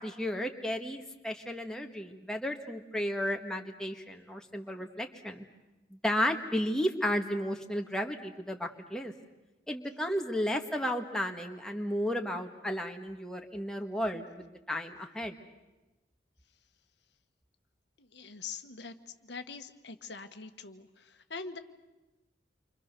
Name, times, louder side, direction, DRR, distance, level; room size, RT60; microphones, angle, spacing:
voice 1, 0.0-5.4 5.9-9.1 9.7-15.3, equal, 5° left, 2 dB, 1.5 m, -33 dB
voice 2, 18.0-18.9 19.2-21.6, left 5 dB, 80° left, 7 dB, 1.4 m, -43 dB
29.0 x 25.0 x 6.8 m, 1.1 s
head